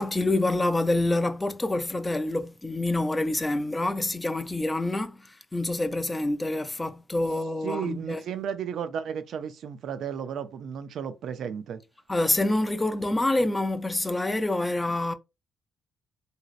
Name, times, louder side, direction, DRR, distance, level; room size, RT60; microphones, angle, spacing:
voice 1, 0.0-8.2 12.1-15.1, left 2 dB, 15° left, 0.4 m, -27 dB
voice 2, 7.6-11.8, right 8 dB, 70° right, 0.4 m, -33 dB
2.9 x 2.7 x 2.4 m
cardioid pair, 90°, 0 cm